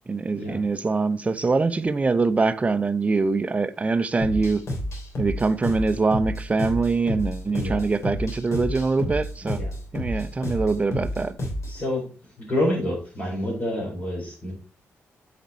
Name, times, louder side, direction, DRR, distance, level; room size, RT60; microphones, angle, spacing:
voice 1, 0.1-4.6 5.2-9.6 9.9-11.4, right 3 dB, 25° right, 0.6 m, -23 dB
sound 1, 4.2-11.8, equal, 65° left, 3.0 m, -30 dB
voice 2, 7.4-7.8 9.4-9.7 10.1-10.2 11.6-14.5, left 1 dB, 30° left, 4.8 m, -28 dB
8.0 x 5.2 x 4.4 m
cardioid pair, 95°, 5 cm